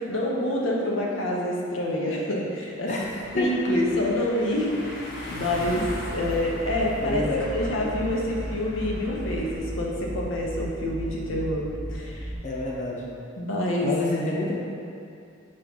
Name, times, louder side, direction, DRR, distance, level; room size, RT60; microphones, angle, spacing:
voice 1, 0.0-2.9 3.3-5.9 6.1-7.2 7.5-12.3 13.4-13.9, left 1 dB, 85° left, -2 dB, 1.0 m, -27 dB
voice 2, 2.9-3.5 7.0-7.5 7.8-7.9 12.4-13.1 13.8-14.5, left 2 dB, 35° left, -4 dB, 0.6 m, -28 dB
sound 1, 3.0-9.6, left 1 dB, 60° left, 1.4 m, -39 dB
sound 2, 5.5-12.3, right 1 dB, ahead, 1.5 m, -35 dB
6.0 x 3.2 x 5.3 m, 2.5 s
head